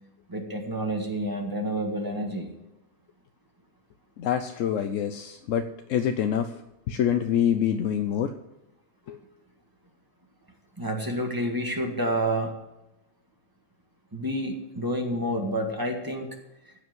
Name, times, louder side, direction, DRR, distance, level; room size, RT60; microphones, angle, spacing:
voice 1, 0.3-2.5 10.8-12.5 14.1-16.3, right 1 dB, 15° right, 2 dB, 1.8 m, -29 dB
voice 2, 4.2-6.6 6.9-8.3 9.1-9.2, left 9 dB, 75° left, 7 dB, 1.0 m, -26 dB
15.0 x 5.2 x 7.8 m, 0.93 s
omnidirectional pair, 1.4 m